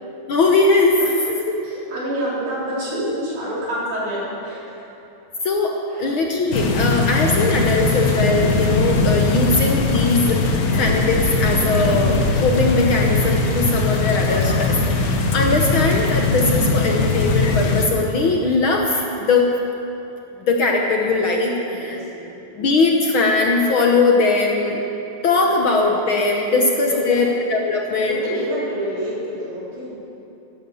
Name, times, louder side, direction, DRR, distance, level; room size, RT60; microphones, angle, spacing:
voice 1, 0.3-1.9 5.4-19.5 20.4-22.0 22.6-24.8 25.2-28.2, left 3 dB, 60° left, 1 dB, 1.5 m, -20 dB
voice 2, 1.6-4.6 5.9-6.1 21.6-22.4 26.5-27.3 28.0-29.9, equal, 85° right, -7 dB, 5.3 m, -28 dB
sound 1, 6.5-17.9, left 3 dB, 75° left, 0.8 m, -20 dB
15.0 x 11.5 x 7.1 m, 2.9 s
omnidirectional pair, 3.3 m